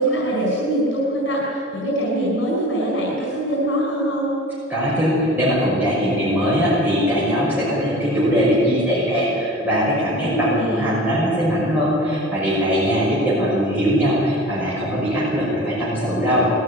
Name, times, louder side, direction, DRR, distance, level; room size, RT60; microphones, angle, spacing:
voice 1, 0.0-4.3 10.2-10.9, right 1 dB, 70° left, -4 dB, 4.8 m, -23 dB
voice 2, 4.7-16.5, equal, 10° right, -9 dB, 5.6 m, -20 dB
20.0 x 14.0 x 9.9 m, 2.9 s
head